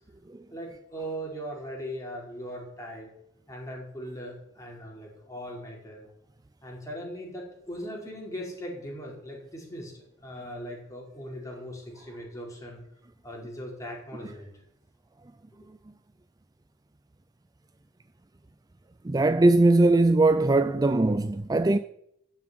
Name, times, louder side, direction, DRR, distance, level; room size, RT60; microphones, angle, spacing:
voice 1, 0.5-3.1 3.5-6.0 6.6-12.8 13.2-14.6, equal, 15° left, 5.0 m, -39 dB
voice 2, 19.0-21.8, right 2 dB, 20° right, 0.4 m, -20 dB
14.5 x 7.3 x 9.5 m
head